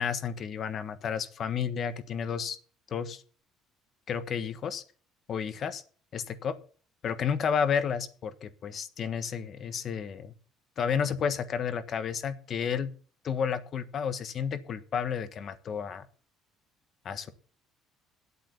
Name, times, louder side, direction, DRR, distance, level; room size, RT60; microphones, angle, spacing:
voice 1, 0.0-2.6 2.9-3.2 4.1-4.8 5.3-5.8 6.1-6.6 7.0-10.3 10.8-12.9 13.2-16.1 17.0-17.3, left 7 dB, 45° left, 11 dB, 1.3 m, -31 dB
9.4 x 8.4 x 8.2 m, 0.42 s
cardioid pair, 130°, 0 cm